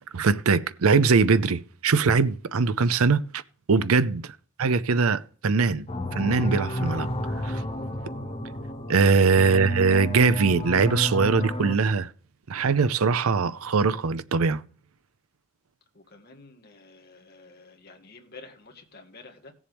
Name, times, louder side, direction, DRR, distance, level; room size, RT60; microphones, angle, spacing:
voice 1, 0.1-3.4 3.7-4.2 4.6-5.9 6.1-7.1 7.4-7.6 8.9-12.1 12.5-14.6, right 4 dB, 80° right, 0.6 m, -21 dB
sound 1, 5.9-11.8, left 1 dB, 25° left, 0.9 m, -31 dB
voice 2, 15.9-19.5, left 3 dB, 45° left, 1.7 m, -49 dB
17.0 x 7.2 x 3.5 m
head